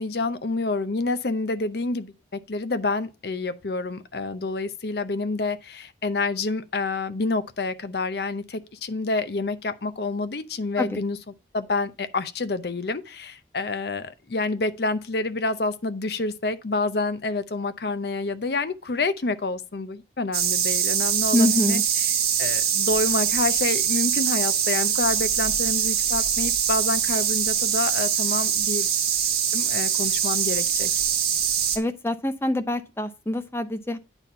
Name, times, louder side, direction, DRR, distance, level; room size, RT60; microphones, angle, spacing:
voice 1, 0.0-11.2 11.5-22.1 22.4-28.9 29.5-30.9, left 3 dB, 65° left, 0.7 m, -28 dB
sound 1, 20.3-31.8, right 8 dB, 60° right, 1.5 m, -23 dB
voice 2, 21.3-21.8 31.7-34.0, left 1 dB, 15° left, 0.6 m, -25 dB
8.9 x 4.1 x 5.5 m
head